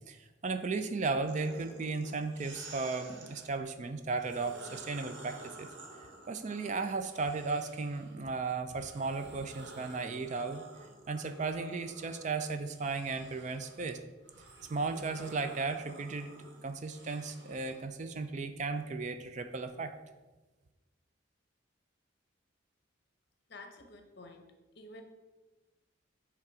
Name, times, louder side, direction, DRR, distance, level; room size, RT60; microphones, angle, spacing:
voice 1, 0.1-5.7 6.3-10.6 11.1-14.0 14.7-16.3 16.6-19.9, right 4 dB, 40° right, 8 dB, 0.4 m, -35 dB
sound 1, 1.2-3.5 4.1-8.2 8.7-17.8, right 2 dB, 65° right, 1.2 m, -52 dB
voice 2, 23.5-25.0, left 2 dB, 55° left, 5 dB, 0.9 m, -51 dB
7.3 x 3.5 x 4.9 m, 1.2 s
head